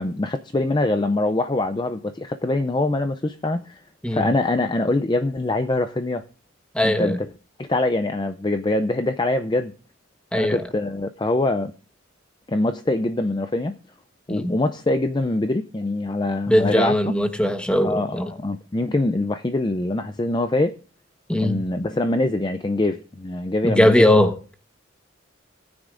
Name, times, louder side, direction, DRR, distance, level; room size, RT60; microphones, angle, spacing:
voice 1, 0.0-3.8 4.1-6.2 6.8-7.1 7.6-9.7 10.4-11.7 12.5-13.7 14.3-16.9 17.8-20.7 21.4-23.9, left 2 dB, 20° left, 9 dB, 0.4 m, -24 dB
voice 2, 6.7-7.2 10.3-10.6 14.3-14.6 16.5-18.3 21.3-21.6 23.6-24.5, left 1 dB, 5° left, 6 dB, 1.2 m, -20 dB
18.5 x 9.6 x 2.5 m, 0.37 s
head